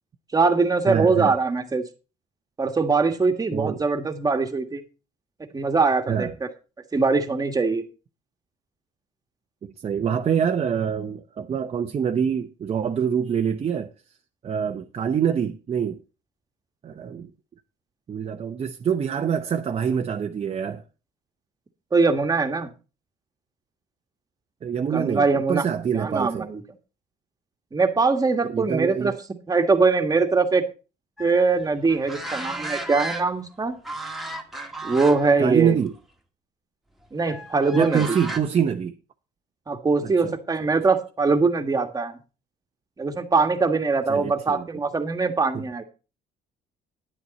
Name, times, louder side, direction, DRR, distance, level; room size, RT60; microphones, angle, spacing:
voice 1, 0.3-1.8 2.6-4.8 5.5-6.3 6.9-7.8 21.9-22.7 24.9-25.6 25.9-26.6 27.7-29.1 29.5-30.6 31.2-33.8 34.8-35.8 37.1-38.2 39.7-42.2 43.0-45.8, right 4 dB, 20° right, 1.6 m, -22 dB
voice 2, 0.9-1.3 3.5-3.8 6.1-6.3 9.6-13.9 14.4-16.0 16.8-17.3 18.1-20.8 24.6-26.5 28.4-29.2 35.4-35.9 37.7-38.9 40.0-40.3 44.1-44.7 45.5-45.6, right 7 dB, 35° right, 0.9 m, -25 dB
sound 1, 31.2-33.5 33.8-35.4 35.8-36.0 37.2-38.4, right 2 dB, ahead, 1.7 m, -34 dB
10.0 x 9.6 x 4.2 m
cardioid pair, 110°, 17 cm